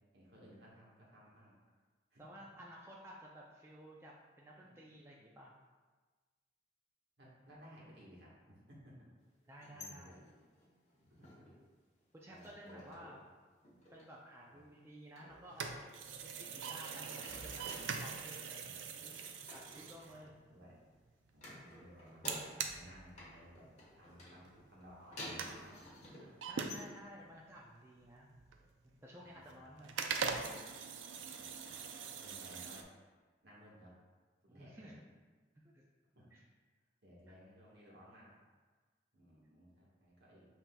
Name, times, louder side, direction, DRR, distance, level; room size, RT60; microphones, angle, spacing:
voice 1, 0.1-1.5 2.1-2.2 4.6-4.8 7.2-9.1 9.7-10.3 11.2-11.5 12.3-13.1 14.5-14.6 18.5-19.0 20.0-20.8 21.3-22.2 22.7-23.7 24.0-26.3 26.8-27.0 28.4-28.7 29.2-30.1 31.1-32.9 33.4-34.0 34.5-34.9 36.1-36.3 37.0-38.4 39.1-40.5, equal, 65° right, -5 dB, 1.2 m, -59 dB
voice 2, 2.2-5.5 9.5-10.2 12.1-13.2 13.9-15.8 16.2-18.7 19.5-20.4 26.4-28.3 28.8-30.0 34.5-35.0 35.6-35.8 36.3-36.4 37.3-37.4, equal, 15° right, -3 dB, 0.3 m, -54 dB
sound 1, 9.5-11.7 12.0-13.3 13.5-14.1 15.2-16.5 16.8-18.0 18.9-20.9 21.3-22.8 23.2-26.9, left 1 dB, 35° left, 1.1 m, -53 dB
sound 2, 15.3-20.7 22.3-23.7 24.0-24.1 24.4-24.6 24.8-25.6 26.4-27.4 27.8-28.9 29.4-29.5 29.8-32.8, right 6 dB, 85° right, 0.4 m, -42 dB
7.4 x 2.9 x 2.2 m, 1.4 s
head